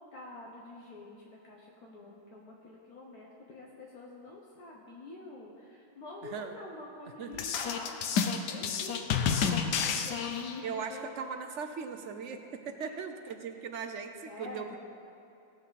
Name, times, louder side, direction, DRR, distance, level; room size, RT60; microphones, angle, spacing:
voice 1, 0.1-11.1 14.3-14.7, left 2 dB, 70° left, -2 dB, 1.6 m, -47 dB
voice 2, 6.2-6.6 7.2-7.5 10.6-14.9, right 6 dB, 60° right, 6 dB, 0.8 m, -39 dB
sound 1, 7.3-10.8, left 6 dB, 85° left, 1.3 m, -30 dB
16.5 x 7.6 x 4.1 m, 2.8 s
omnidirectional pair, 1.7 m